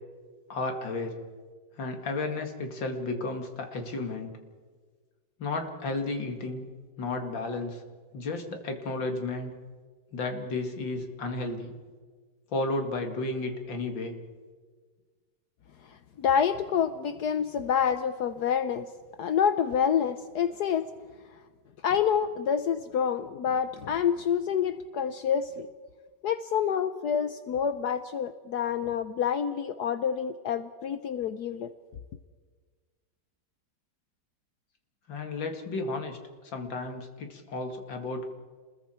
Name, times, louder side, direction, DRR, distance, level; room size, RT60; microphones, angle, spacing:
voice 1, 0.5-1.2 1.8-4.4 5.4-6.6 7.0-7.8 8.1-9.5 10.1-11.7 12.5-14.2 35.1-36.2 36.5-38.3, left 2 dB, 80° left, 4 dB, 2.9 m, -33 dB
voice 2, 16.2-18.9 19.2-20.9 21.8-25.7 26.2-31.7, left 8 dB, 65° left, 10 dB, 1.2 m, -27 dB
29.5 x 21.5 x 4.5 m, 1.5 s
omnidirectional pair, 2.0 m